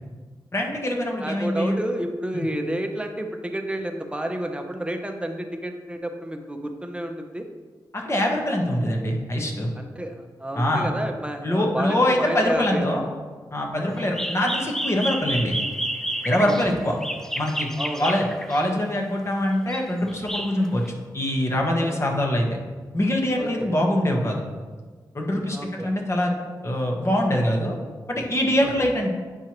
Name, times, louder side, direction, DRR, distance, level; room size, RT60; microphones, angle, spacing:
voice 1, 0.5-1.8 2.3-2.5 7.9-9.7 10.5-10.9 11.4-13.0 13.5-15.6 16.2-16.9 17.4-17.7 18.0-20.8 21.1-22.6 22.9-24.4 25.1-25.6 25.8-26.3 26.6-27.7 28.1-29.1, left 1 dB, 35° left, 0 dB, 1.3 m, -23 dB
voice 2, 1.2-7.5 9.8-13.1 13.8-13.9 16.4-16.6 17.8-18.2 21.7-21.9 23.4-23.7 25.5-26.0 28.8-28.9, right 1 dB, 15° right, 4 dB, 0.8 m, -30 dB
sound 1, 14.0-18.8 19.5-20.9, equal, 5° left, 0.4 m, -30 dB
8.9 x 4.5 x 3.0 m, 1.4 s
cardioid pair, 60°, 8 cm